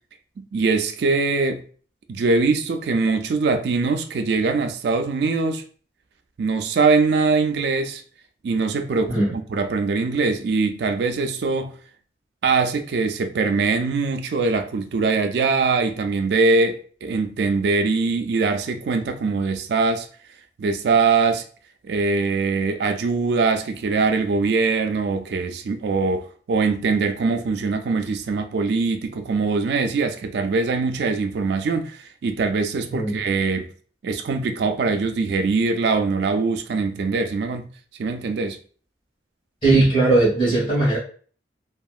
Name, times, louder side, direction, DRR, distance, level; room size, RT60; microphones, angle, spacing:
voice 1, 0.4-1.6 2.1-5.6 6.4-8.0 8.4-11.8 12.4-20.1 20.6-21.4 21.8-33.7 34.0-37.7 38.0-38.6, right 4 dB, 60° right, 0.3 m, -22 dB
voice 2, 39.6-41.0, right 2 dB, 25° left, 1.4 m, -18 dB
2.8 x 2.4 x 2.3 m
head